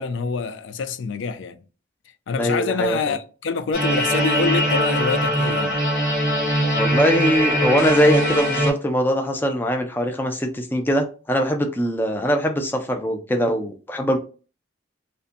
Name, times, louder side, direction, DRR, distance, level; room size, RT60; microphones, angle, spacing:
voice 1, 0.0-1.6 2.3-5.8, left 5 dB, 85° left, 0.4 m, -26 dB
voice 2, 2.4-3.1 6.8-14.2, equal, 10° left, 0.4 m, -22 dB
sound 1, 3.7-8.7, equal, 45° left, 1.1 m, -21 dB
2.5 x 2.1 x 2.5 m
head